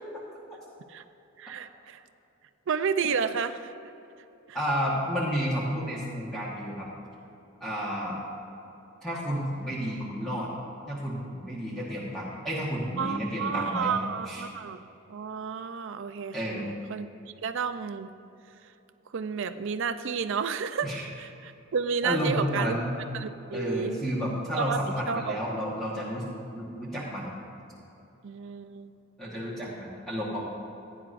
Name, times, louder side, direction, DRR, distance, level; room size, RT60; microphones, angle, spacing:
voice 1, 1.4-2.0 2.7-3.7 4.5-4.6 13.0-14.8 15.1-17.1 17.4-18.1 19.1-22.8 23.1-24.0 24.6-25.4 28.2-28.9, right 6 dB, 65° right, 10 dB, 0.5 m, -31 dB
voice 2, 4.5-6.9 7.6-8.2 9.0-10.5 10.9-13.9 14.2-14.4 16.3-16.7 20.8-21.0 22.0-23.0 23.5-26.3 26.5-27.3 29.2-30.4, equal, ahead, -8 dB, 1.3 m, -31 dB
16.0 x 9.8 x 2.5 m, 3.0 s
head